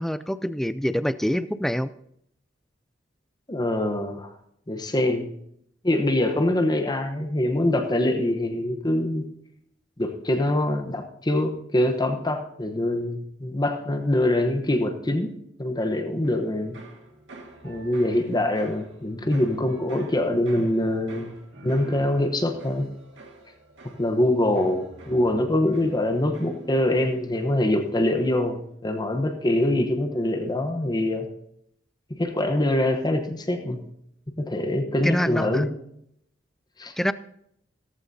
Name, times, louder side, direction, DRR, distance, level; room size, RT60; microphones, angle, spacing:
voice 1, 0.0-1.9 35.0-35.6 37.0-37.1, equal, ahead, 14 dB, 0.4 m, -26 dB
voice 2, 3.5-4.3 4.7-5.3 5.8-9.3 10.0-16.8 17.6-21.3 21.6-22.9 23.8-31.3 32.1-33.8 34.4-35.7 36.8-36.9, left 1 dB, 20° left, 5 dB, 1.0 m, -24 dB
sound 1, 16.2-27.8 28.1-28.6, right 2 dB, 70° right, 2.1 m, -47 dB
16.0 x 14.5 x 2.8 m, 0.73 s
head